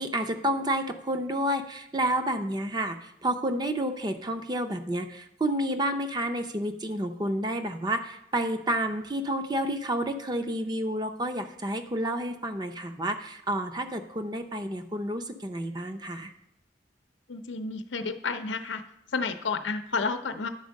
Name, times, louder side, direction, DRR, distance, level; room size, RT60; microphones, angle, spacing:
voice 1, 0.0-16.3, right 1 dB, 25° right, 7 dB, 0.6 m, -30 dB
voice 2, 17.3-18.8 19.1-20.5, left 4 dB, 85° left, 9 dB, 0.6 m, -31 dB
10.5 x 4.4 x 6.4 m, 0.84 s
head